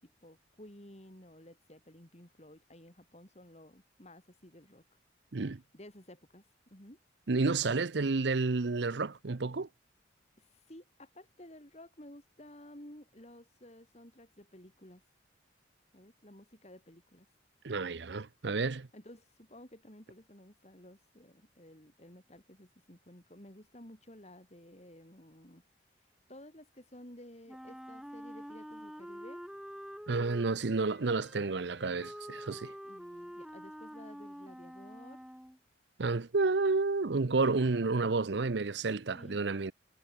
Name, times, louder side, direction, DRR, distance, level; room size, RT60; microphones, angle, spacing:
voice 1, 0.0-4.8 5.7-6.4 6.7-7.0 10.4-15.0 15.9-17.3 18.9-25.6 26.3-29.4 32.8-35.3 39.1-39.4, left 1 dB, 35° left, 4.1 m, -54 dB
voice 2, 7.3-9.7 17.6-18.9 30.1-32.7 36.0-39.7, right 3 dB, 65° right, 0.7 m, -30 dB
Wind instrument woodwind instrument, 27.5-35.6, equal, ahead, 2.0 m, -47 dB
head